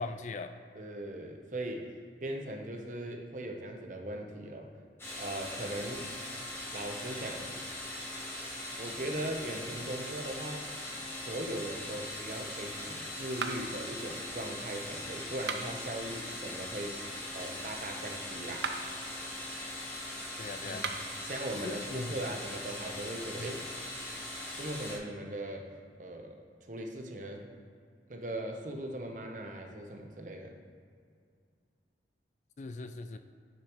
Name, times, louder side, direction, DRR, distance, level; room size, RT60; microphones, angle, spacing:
voice 1, 0.0-0.6 20.4-20.9 21.6-22.4 23.3-23.6 32.6-33.2, left 3 dB, 40° left, 9 dB, 0.3 m, -40 dB
voice 2, 0.7-1.9 2.2-4.7 5.2-6.1 6.7-7.5 8.8-10.7 11.2-17.0 17.3-18.7 20.6-20.8 21.2-23.6 24.6-25.7 26.0-26.4 26.7-27.4 28.1-30.6, right 1 dB, 45° right, 2 dB, 0.9 m, -39 dB
sound 1, 5.0-25.0, left 1 dB, 15° left, 1.2 m, -41 dB
sound 2, 13.4-13.9 15.3-15.9 18.5-19.0 20.7-21.2, right 5 dB, 75° right, 0.6 m, -37 dB
10.0 x 6.6 x 3.1 m, 2.2 s
head